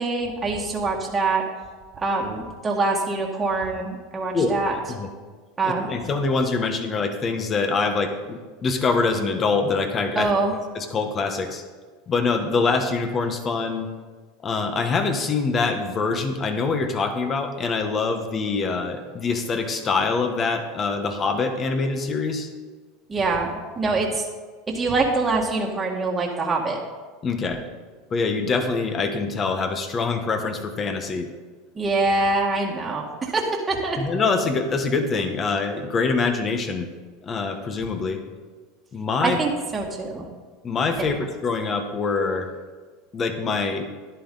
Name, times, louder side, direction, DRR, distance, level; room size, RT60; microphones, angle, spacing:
voice 1, 0.0-1.4 1.9-4.8 5.6-5.9 10.2-10.5 23.1-24.3 24.7-26.8 31.8-34.0 39.2-40.3, right 3 dB, 20° right, -2 dB, 1.7 m, -24 dB
voice 2, 5.9-10.3 10.7-11.6 12.1-13.9 14.4-22.5 27.2-27.6 28.1-31.3 34.0-36.9 37.2-38.2 38.9-39.4 40.6-42.5 43.1-43.9, left 4 dB, 30° left, 7 dB, 1.3 m, -24 dB
11.0 x 11.0 x 3.9 m, 1.4 s
supercardioid pair, 125°, 0 cm